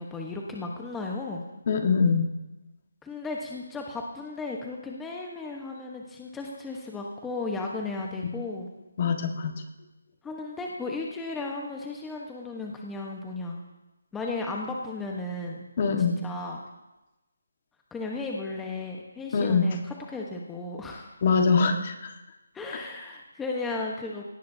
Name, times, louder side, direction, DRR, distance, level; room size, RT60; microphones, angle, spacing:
voice 1, 0.0-1.4 3.0-8.7 10.2-13.6 14.1-15.6 16.2-16.6 17.9-21.2 22.5-24.2, left 3 dB, 5° left, -1 dB, 1.2 m, -35 dB
voice 2, 1.7-2.3 9.0-9.5 15.8-16.2 19.3-19.7 21.2-22.1, left 5 dB, 40° left, 5 dB, 1.7 m, -23 dB
18.5 x 18.0 x 2.8 m, 1.0 s
figure-of-eight pair, 160°, 0 cm